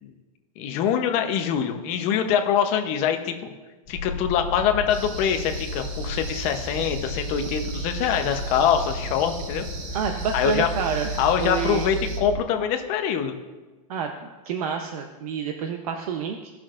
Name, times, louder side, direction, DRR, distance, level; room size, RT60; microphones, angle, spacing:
voice 1, 0.6-3.3 3.9-9.7 10.3-10.7 11.2-13.3, left 8 dB, 35° left, 6 dB, 0.9 m, -24 dB
sound 1, 3.9-12.4, right 1 dB, 15° left, 2.0 m, -33 dB
sound 2, 4.9-12.2, right 4 dB, 50° right, 1.8 m, -41 dB
voice 2, 9.9-11.1 11.4-11.9 13.9-16.5, right 7 dB, 65° right, 4 dB, 0.9 m, -28 dB
17.0 x 6.1 x 2.5 m, 1.2 s
supercardioid pair, 160°, 20 cm